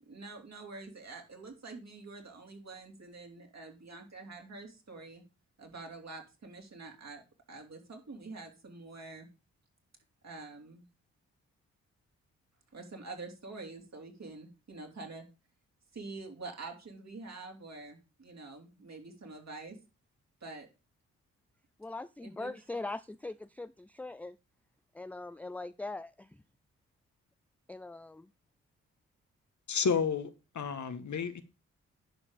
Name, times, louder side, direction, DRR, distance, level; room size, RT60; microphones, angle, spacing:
voice 1, 0.1-5.2 5.6-7.2 7.5-9.3 10.2-10.8 12.7-15.3 15.9-19.8 20.4-20.7 22.2-22.5, right 3 dB, 50° right, 3.6 m, -46 dB
voice 2, 21.8-24.4 24.9-26.4 27.7-28.3, left 2 dB, 5° left, 0.4 m, -41 dB
voice 3, 29.7-31.4, left 6 dB, 55° left, 1.5 m, -31 dB
11.0 x 4.9 x 5.0 m
hypercardioid pair, 40°, 34 cm